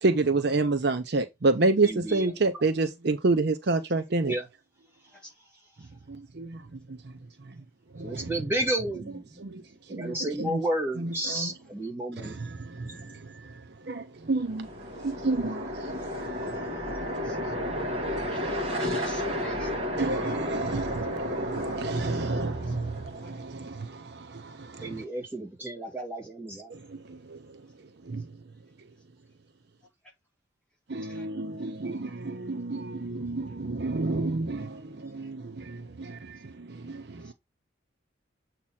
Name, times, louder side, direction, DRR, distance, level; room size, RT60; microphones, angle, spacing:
voice 1, 0.0-4.3 6.4-6.6 8.0-8.3 9.4-9.6 9.9-10.6 11.0-11.5 12.2-13.2 13.9-14.7 15.0-15.9 16.2-16.5 16.9-18.2 20.0-25.0 26.7-27.0 27.3-27.4 28.1-28.2 30.9-37.3, right 3 dB, 55° right, 0.7 m, -29 dB
voice 2, 1.8-2.5 4.2-4.5 8.0-9.3 9.9-12.4 12.8-13.0 24.8-26.8, right 1 dB, 10° right, 2.1 m, -32 dB
sound 1, 14.3-23.4, left 1 dB, 30° right, 1.5 m, -33 dB
voice 3, 18.3-19.7 31.1-31.3, right 1 dB, 5° left, 1.8 m, -46 dB
7.3 x 3.0 x 5.6 m
head